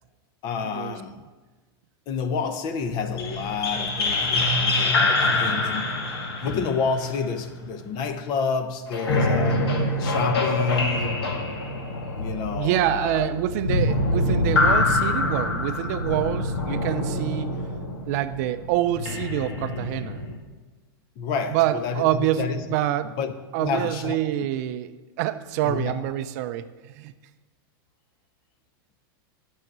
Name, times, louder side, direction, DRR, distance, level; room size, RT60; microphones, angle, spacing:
voice 1, 0.4-1.2 2.1-6.0 6.4-9.7 10.0-11.4 12.2-13.3 21.2-22.8 23.0-23.3 23.6-24.2 25.6-26.1, left 5 dB, 35° left, 0.7 m, -29 dB
sound 1, 2.8-7.9 8.9-20.4, left 2 dB, 90° left, 1.6 m, -25 dB
voice 2, 12.5-17.6 18.1-20.2 21.5-23.2 23.5-24.9 25.2-27.1, right 13 dB, 45° right, 0.4 m, -26 dB
9.3 x 6.4 x 6.0 m
supercardioid pair, 160°, 13 cm